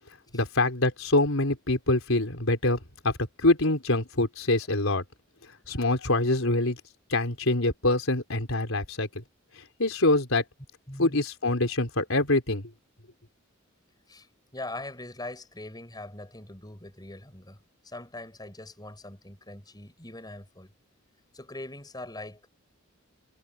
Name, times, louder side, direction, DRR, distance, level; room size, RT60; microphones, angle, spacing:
voice 1, 0.3-2.8 3.0-5.0 5.7-6.8 7.1-9.2 9.8-10.4 11.0-12.7, left 2 dB, 80° left, 4.0 m, -25 dB
voice 2, 10.9-11.2 14.1-14.3 14.5-17.6 17.8-20.7 21.3-22.5, left 2 dB, 20° left, 5.9 m, -41 dB
head